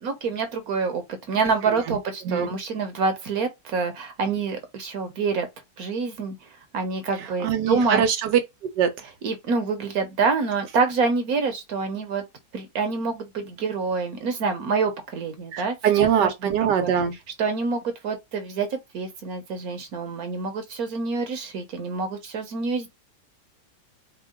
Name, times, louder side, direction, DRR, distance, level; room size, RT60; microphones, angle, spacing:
voice 1, 0.0-5.5 5.8-6.3 6.7-8.0 9.2-12.2 12.5-16.3 16.6-16.9 17.4-22.9, right 4 dB, 65° right, 1.2 m, -26 dB
voice 2, 2.2-2.5 7.4-8.4 8.8-8.9 15.5-17.1, right 8 dB, 90° right, 1.4 m, -22 dB
4.5 x 2.3 x 3.6 m
omnidirectional pair, 1.8 m